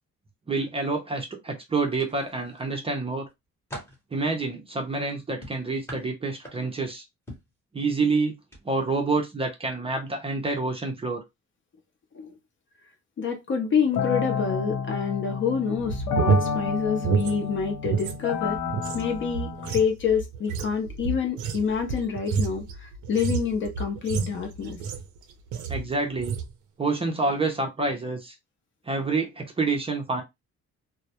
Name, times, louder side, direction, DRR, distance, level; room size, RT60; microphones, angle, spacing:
voice 1, 0.5-3.3 4.1-7.0 7.7-8.4 8.6-11.2 25.7-26.4 26.8-28.3 28.9-30.2, right 3 dB, 20° right, 0.5 m, -27 dB
sound 1, 1.9-2.7 3.2-4.1 5.4-6.9 7.3-7.6 8.4-8.6 9.0-9.2, equal, 10° left, 0.8 m, -43 dB
voice 2, 13.2-18.6 18.9-24.8, left 6 dB, 40° left, 0.6 m, -27 dB
sound 2, 13.9-19.8, left 6 dB, 90° left, 0.6 m, -30 dB
sound 3, 15.8-18.2 18.5-25.2 25.5-25.9 26.2-26.5, right 6 dB, 85° right, 0.5 m, -29 dB
2.2 x 2.0 x 2.7 m
cardioid pair, 160°, 29 cm